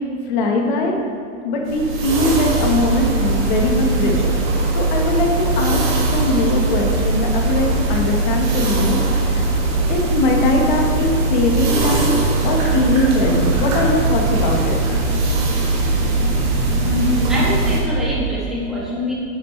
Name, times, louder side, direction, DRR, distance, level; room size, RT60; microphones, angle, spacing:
voice 1, 0.3-1.0 1.4-4.3 4.7-9.4 9.9-14.8, left 2 dB, 40° left, 1 dB, 1.2 m, -20 dB
sound 1, 1.6-17.8, right 2 dB, 30° right, 1.5 m, -20 dB
voice 2, 16.8-19.1, left 1 dB, ahead, -9 dB, 1.4 m, -24 dB
9.6 x 8.8 x 3.2 m, 2.5 s
supercardioid pair, 180°, 37 cm